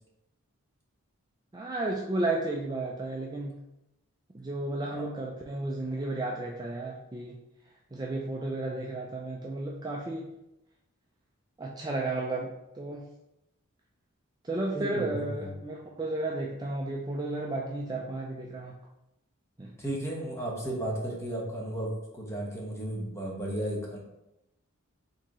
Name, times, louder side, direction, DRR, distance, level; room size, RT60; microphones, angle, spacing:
voice 1, 1.5-3.6 4.3-7.4 7.9-10.3 11.6-13.0 14.4-18.7 19.6-19.7, right 2 dB, 20° right, -2 dB, 0.4 m, -33 dB
voice 2, 14.7-15.5 19.8-24.0, right 1 dB, 15° left, -3 dB, 1.1 m, -34 dB
4.7 x 3.6 x 3.0 m, 0.88 s
head